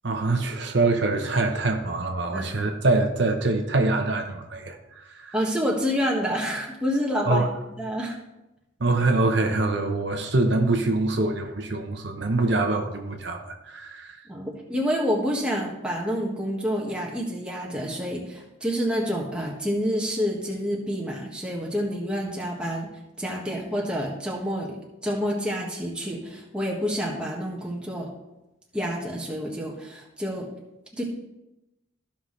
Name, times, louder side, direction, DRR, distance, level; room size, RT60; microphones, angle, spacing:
voice 1, 0.0-5.3 7.3-7.5 8.8-14.2, right 2 dB, 60° right, 3 dB, 0.8 m, -24 dB
voice 2, 5.3-7.5 7.8-8.1 14.3-22.9 23.2-24.8 25.0-28.1 28.7-30.5 30.9-31.0, equal, 5° right, -2 dB, 1.4 m, -28 dB
14.5 x 5.8 x 3.2 m, 0.95 s
head